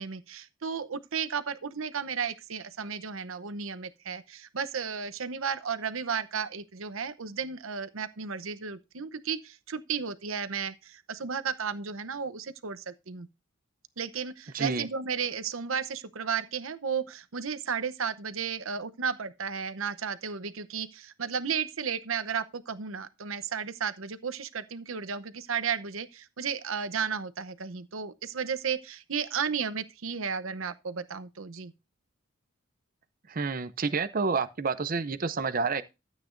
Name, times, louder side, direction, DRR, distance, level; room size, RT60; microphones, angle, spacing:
voice 1, 0.0-13.3 14.0-31.7, right 6 dB, 80° right, 0.8 m, -33 dB
voice 2, 14.5-14.9 33.3-35.8, right 4 dB, 40° right, 0.6 m, -29 dB
13.0 x 8.4 x 2.6 m
head